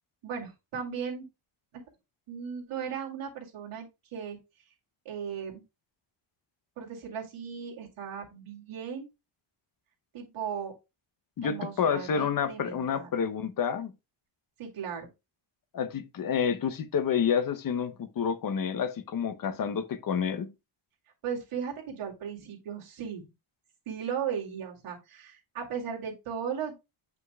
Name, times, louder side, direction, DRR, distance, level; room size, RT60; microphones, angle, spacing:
voice 1, 0.2-1.2 2.3-3.9 4.1-4.4 5.1-5.6 6.8-9.1 10.1-10.7 11.4-13.1 14.6-15.1 21.2-23.2 23.9-26.8, right 7 dB, 85° right, 2.3 m, -36 dB
voice 2, 11.4-13.9 15.7-20.5, left 7 dB, 45° left, 0.7 m, -29 dB
7.8 x 5.7 x 2.2 m
wide cardioid pair, 145°, 49 cm